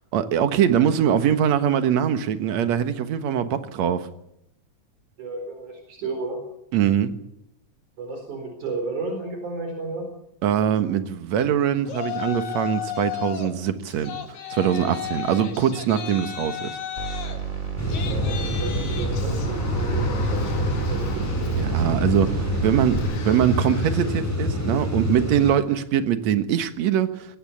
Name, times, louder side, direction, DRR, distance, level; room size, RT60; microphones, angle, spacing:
voice 1, 0.1-4.1 6.7-7.1 10.4-14.2 14.5-16.7 21.6-23.0 23.3-27.3, right 9 dB, 65° right, 10 dB, 2.6 m, -22 dB
voice 2, 5.2-6.4 8.0-10.0 18.0-21.2, right 3 dB, 85° right, 3 dB, 6.0 m, -33 dB
Yell, 11.9-13.5 13.9-24.3, left 9 dB, 75° left, 3.5 m, -36 dB
sound 1, 17.0-23.0, right 7 dB, 25° right, 3.8 m, -31 dB
sound 2, 17.8-25.5, left 1 dB, 5° left, 6.8 m, -26 dB
20.5 x 18.0 x 8.7 m, 0.78 s
omnidirectional pair, 3.4 m